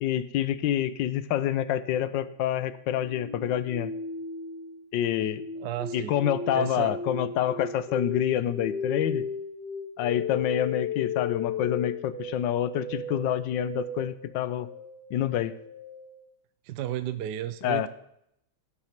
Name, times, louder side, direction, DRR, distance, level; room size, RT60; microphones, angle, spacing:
voice 1, 0.0-3.9 4.9-5.4 5.9-9.2 10.0-14.7 15.1-15.6 17.6-17.9, left 11 dB, 70° left, 14 dB, 1.2 m, -27 dB
sound 1, 2.9-16.1, left 5 dB, 50° left, 2.3 m, -35 dB
voice 2, 5.6-6.2 6.5-7.0 16.6-17.9, right 12 dB, 75° right, 12 dB, 1.0 m, -33 dB
17.0 x 6.4 x 5.9 m, 0.77 s
omnidirectional pair, 2.4 m